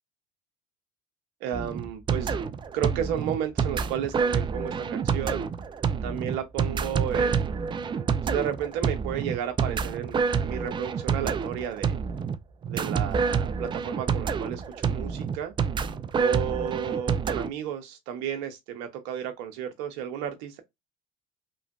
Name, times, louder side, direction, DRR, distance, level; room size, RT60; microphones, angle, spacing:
voice 1, 1.4-2.3 2.7-5.5 6.0-7.6 7.9-12.0 12.7-15.5 16.1-20.6, right 9 dB, 80° right, 0.7 m, -33 dB
sound 1, 1.5-17.5, right 6 dB, 30° right, 0.3 m, -28 dB
2.9 x 2.4 x 2.3 m
supercardioid pair, 80°, 17 cm